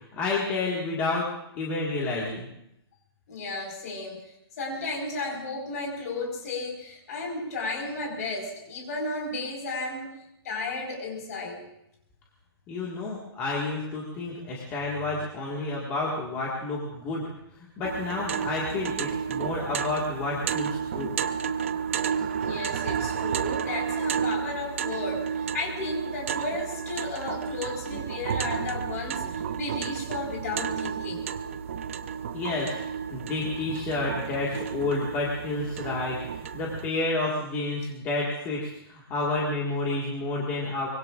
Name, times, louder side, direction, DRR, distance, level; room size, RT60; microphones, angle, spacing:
voice 1, 0.1-1.3 1.6-2.5 12.7-17.2 17.6-21.1 32.3-32.8 33.1-40.9, left 2 dB, 15° left, -4 dB, 1.9 m, -30 dB
voice 2, 3.3-4.3 4.6-10.1 10.4-11.6 22.4-31.3, left 2 dB, 35° left, 1 dB, 4.8 m, -34 dB
sound 1, 17.8-36.9, right 7 dB, 30° right, 0.5 m, -32 dB
24.5 x 23.0 x 2.5 m, 0.80 s
hypercardioid pair, 180°, 14 cm